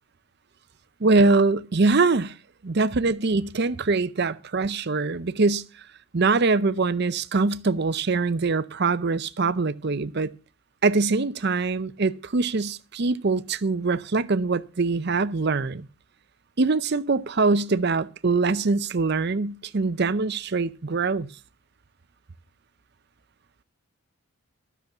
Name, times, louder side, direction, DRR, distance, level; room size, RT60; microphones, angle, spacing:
voice 1, 1.0-2.3 2.6-5.7 6.1-10.3 10.8-15.8 16.6-21.3, right 3 dB, 50° right, 0.6 m, -23 dB
13.0 x 7.0 x 7.0 m
head